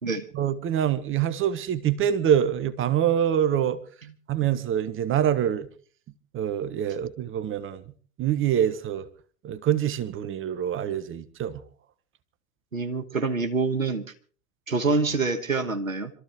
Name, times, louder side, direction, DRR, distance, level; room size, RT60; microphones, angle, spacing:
voice 1, 0.3-3.8 4.3-5.7 6.3-7.8 8.2-9.1 9.4-11.6, right 10 dB, 30° right, 14 dB, 1.3 m, -25 dB
voice 2, 12.7-14.1 14.7-16.1, right 3 dB, 90° right, 8 dB, 1.5 m, -26 dB
26.0 x 14.0 x 3.5 m, 0.42 s
figure-of-eight pair, 80°, 39 cm